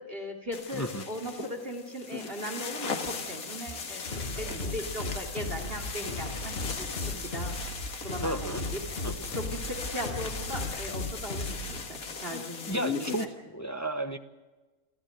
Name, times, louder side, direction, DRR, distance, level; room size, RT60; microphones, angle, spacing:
voice 1, 0.0-7.6 8.0-8.8 9.3-13.3, equal, 40° right, 4 dB, 2.9 m, -38 dB
sound 1, 0.5-13.3, left 5 dB, 75° left, 2.1 m, -38 dB
voice 2, 0.7-1.0 4.1-4.2 8.2-8.6 9.0-9.3 12.7-14.2, right 1 dB, 15° left, 8 dB, 1.0 m, -33 dB
sound 2, 2.8-10.5, right 2 dB, 55° right, 3.6 m, -53 dB
sound 3, 4.1-11.8, left 2 dB, 40° left, 2.1 m, -36 dB
27.5 x 15.0 x 7.8 m, 1.3 s
omnidirectional pair, 1.5 m